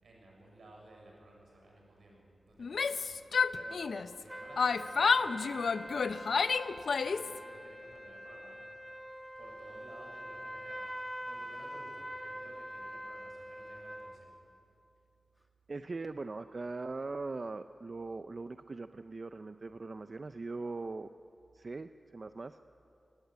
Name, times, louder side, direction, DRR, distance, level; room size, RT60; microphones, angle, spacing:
voice 1, 0.0-6.3 6.8-8.7 9.4-14.4, right 1 dB, 75° right, -1 dB, 6.6 m, -55 dB
Yell, 2.6-4.2 4.6-7.4, left 5 dB, 75° left, 0.6 m, -30 dB
sound 1, 4.3-14.2, equal, ahead, 1.3 m, -45 dB
voice 2, 15.7-21.1 21.5-22.6, right 3 dB, 40° right, 10 dB, 0.5 m, -40 dB
23.0 x 17.0 x 9.3 m, 2.7 s
wide cardioid pair, 125°, 0 cm